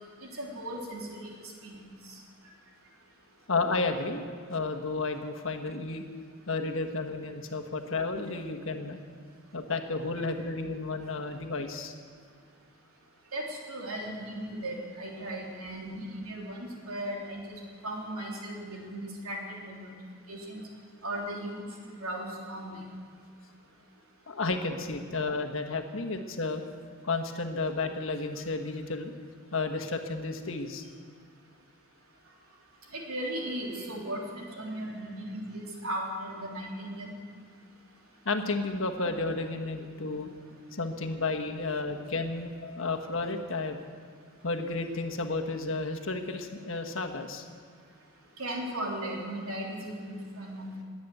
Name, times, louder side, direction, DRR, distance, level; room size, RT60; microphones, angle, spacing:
voice 1, 0.2-1.3 1.6-1.8 2.1-2.2 13.3-19.9 20.3-20.6 21.0-22.8 32.9-37.1 48.4-50.7, right 1 dB, 85° right, -2 dB, 3.5 m, -37 dB
voice 2, 3.5-4.2 4.5-6.0 6.5-9.0 9.5-11.9 24.3-26.6 27.0-29.1 29.5-30.8 38.2-40.3 40.7-43.8 44.4-47.4, left 3 dB, 65° left, 6 dB, 1.4 m, -32 dB
21.0 x 8.8 x 7.9 m, 2.2 s
head